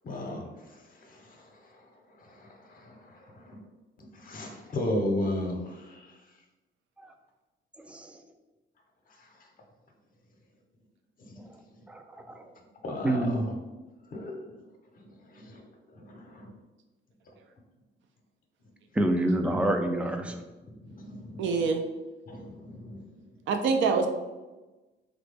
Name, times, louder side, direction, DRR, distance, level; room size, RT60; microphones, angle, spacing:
voice 1, 0.0-0.5 1.1-1.4 2.3-2.9 3.4-3.6 4.1-6.0 11.2-11.3 12.8-13.3 14.1-14.4 15.3-15.6 16.0-16.5 20.8-21.6 22.3-23.0, left 1 dB, 45° left, 1 dB, 0.7 m, -34 dB
voice 2, 7.8-8.2 11.9-12.5 13.0-13.6 18.9-20.4, right 1 dB, 5° right, 5 dB, 0.3 m, -28 dB
voice 3, 21.4-21.8 23.5-24.1, right 5 dB, 70° right, 5 dB, 0.5 m, -25 dB
3.2 x 2.0 x 3.3 m, 1.1 s
cardioid pair, 90°, 20 cm